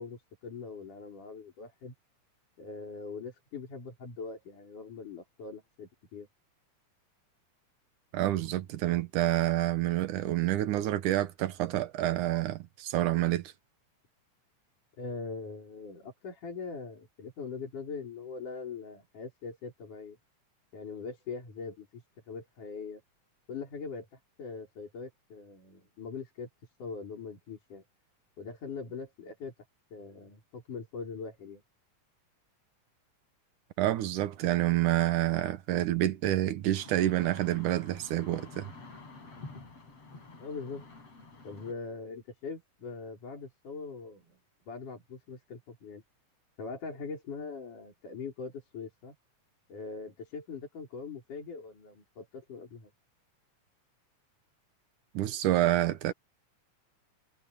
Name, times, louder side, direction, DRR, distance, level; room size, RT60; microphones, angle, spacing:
voice 1, 0.0-1.9 2.6-6.3 15.0-20.2 20.7-23.0 23.5-26.5 26.8-27.8 28.4-29.5 29.9-31.6 40.4-40.9 41.4-44.4 44.7-46.0 46.6-49.2 49.7-52.9, left 4 dB, 80° left, 6.9 m, -42 dB
voice 2, 8.1-13.5 33.8-38.7 55.1-56.1, right 14 dB, 80° right, 2.6 m, -28 dB
sound 1, 36.7-41.7, left 3 dB, 50° left, 6.7 m, -49 dB
omnidirectional pair, 3.6 m